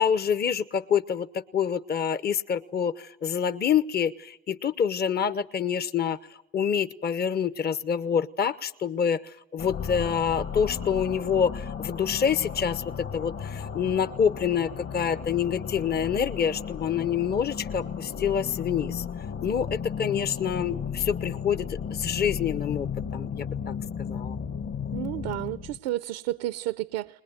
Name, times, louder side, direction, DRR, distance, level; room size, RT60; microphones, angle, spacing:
voice 1, 0.0-6.2 6.5-12.8 13.1-19.0 19.4-22.9 23.1-23.7 24.1-24.4, left 7 dB, 30° left, 13 dB, 1.0 m, -27 dB
sound 1, 9.6-25.8, left 7 dB, 45° left, 1.9 m, -35 dB
voice 2, 24.9-27.1, right 15 dB, 80° right, 14 dB, 0.8 m, -31 dB
21.5 x 21.0 x 9.1 m, 0.80 s
supercardioid pair, 80°, 31 cm